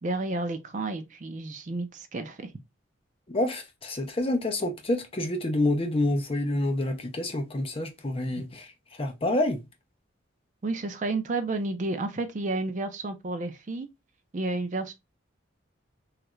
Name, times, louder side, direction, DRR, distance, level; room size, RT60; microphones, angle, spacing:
voice 1, 0.0-2.5 8.3-8.5 10.6-13.9 14.3-14.9, right 2 dB, 40° right, 0.4 m, -31 dB
voice 2, 3.3-8.7 9.0-9.6, left 1 dB, 30° left, 0.6 m, -28 dB
3.1 x 2.4 x 3.0 m
head